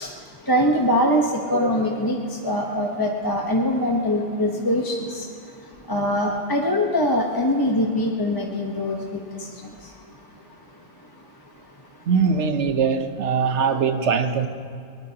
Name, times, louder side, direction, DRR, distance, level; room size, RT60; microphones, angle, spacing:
voice 1, 0.0-12.1, equal, 20° left, 0 dB, 1.0 m, -24 dB
voice 2, 12.1-14.5, right 6 dB, 75° right, 8 dB, 1.2 m, -21 dB
22.5 x 20.0 x 2.9 m, 2.4 s
omnidirectional pair, 1.2 m